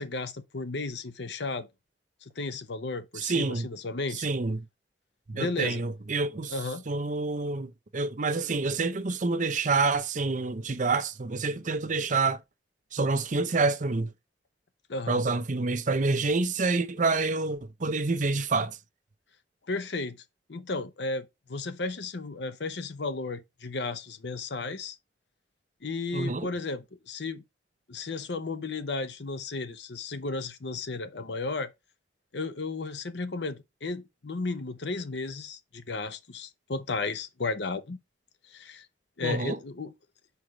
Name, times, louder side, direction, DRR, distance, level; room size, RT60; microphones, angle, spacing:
voice 1, 0.0-1.7 2.2-4.3 5.3-5.8 6.5-6.8 14.9-15.2 19.7-20.2 20.5-25.0 25.8-27.4 27.9-31.7 32.3-38.0 38.5-38.9 39.2-39.9, left 3 dB, 70° left, 0.8 m, -34 dB
voice 2, 3.2-3.7 4.1-4.6 5.3-6.5 6.9-12.4 12.9-14.1 15.1-18.8 26.1-26.5 39.2-39.6, right 3 dB, 45° right, 0.7 m, -27 dB
5.0 x 4.7 x 4.8 m
head